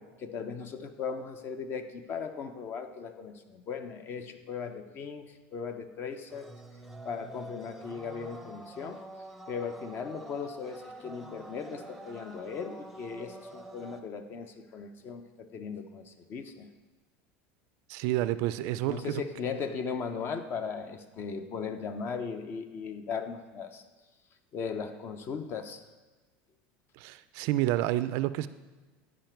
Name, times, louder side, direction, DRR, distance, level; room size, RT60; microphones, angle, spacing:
voice 1, 0.0-6.5 7.0-9.0 9.5-16.7 18.8-23.8 24.5-25.8, left 6 dB, 40° left, 9 dB, 0.7 m, -38 dB
sound 1, 6.3-14.0, right 1 dB, ahead, 0.7 m, -47 dB
voice 2, 17.9-19.2 27.0-28.5, right 15 dB, 65° right, 14 dB, 0.4 m, -29 dB
10.5 x 5.0 x 4.5 m, 1.3 s
supercardioid pair, 115°, 6 cm